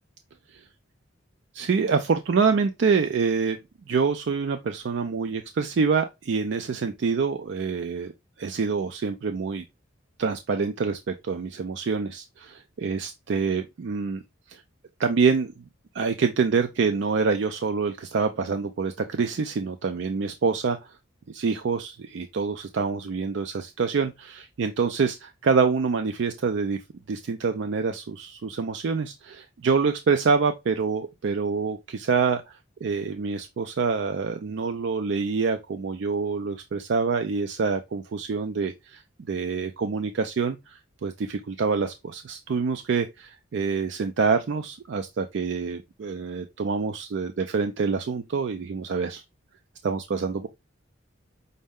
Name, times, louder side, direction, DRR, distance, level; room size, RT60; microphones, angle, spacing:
voice 1, 1.5-3.6 3.9-8.1 8.4-9.6 10.2-14.2 14.5-14.6 15.0-15.5 15.9-20.8 21.3-26.8 27.1-39.0 39.3-49.2 49.8-50.5, right 5 dB, 60° right, 0.4 m, -26 dB
5.3 x 2.1 x 3.5 m
head